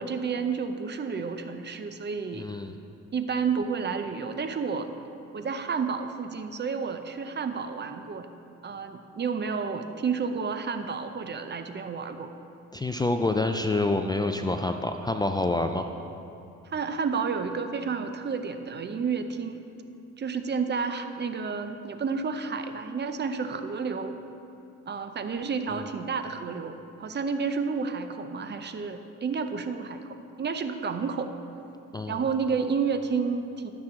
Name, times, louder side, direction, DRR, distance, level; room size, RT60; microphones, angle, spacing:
voice 1, 0.0-2.5 3.1-4.9 5.3-8.3 8.6-12.3 16.6-19.6 20.2-24.2 24.9-31.3 32.1-33.7, right 5 dB, 35° right, 8 dB, 0.6 m, -30 dB
voice 2, 2.3-2.7 12.7-15.8 31.9-32.2, left 2 dB, 15° left, 6 dB, 0.4 m, -27 dB
14.0 x 6.2 x 3.7 m, 2.7 s
cardioid pair, 90°, 30 cm